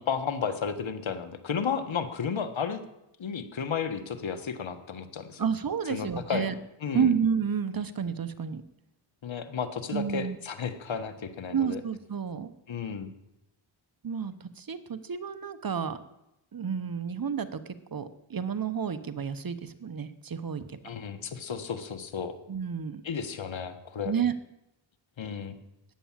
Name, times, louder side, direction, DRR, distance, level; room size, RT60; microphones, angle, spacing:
voice 1, 0.0-2.8 3.2-5.4 5.9-6.5 6.8-7.1 9.2-11.8 12.7-13.1 20.8-22.3 23.0-24.1 25.2-25.6, left 6 dB, 70° left, 8 dB, 1.5 m, -33 dB
voice 2, 5.4-6.6 6.9-8.6 9.9-10.4 11.5-12.5 14.0-16.0 16.5-20.8 22.5-23.0 24.0-24.3, right 7 dB, 45° right, 12 dB, 1.0 m, -30 dB
14.5 x 10.0 x 7.5 m, 0.88 s
wide cardioid pair, 90°, 47 cm